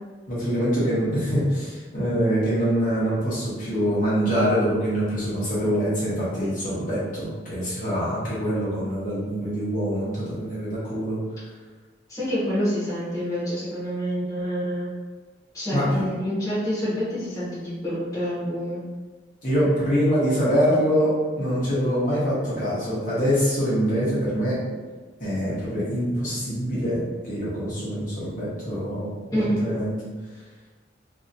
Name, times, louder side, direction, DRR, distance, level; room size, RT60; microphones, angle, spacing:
voice 1, 0.3-11.2 15.7-16.1 19.4-24.6 25.2-30.0, equal, 45° left, -10 dB, 1.2 m, -24 dB
voice 2, 12.1-14.9 15.5-18.8 29.3-29.8, equal, 20° left, -11 dB, 1.2 m, -27 dB
3.1 x 2.9 x 2.6 m, 1.4 s
head